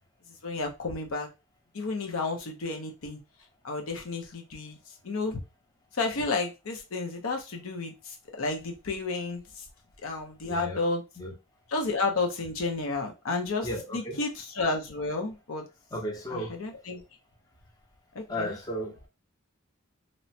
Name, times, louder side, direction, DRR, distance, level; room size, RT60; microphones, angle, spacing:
voice 1, 0.4-1.3 1.7-3.2 3.6-4.8 5.0-5.4 5.9-9.7 10.0-11.0 11.7-15.7 16.3-17.0 18.1-18.5, left 3 dB, 65° left, 0.6 m, -31 dB
voice 2, 10.4-10.8 11.2-11.3 13.6-14.2 15.9-16.6 18.3-19.1, equal, 20° left, 0.6 m, -34 dB
3.0 x 2.1 x 2.7 m
head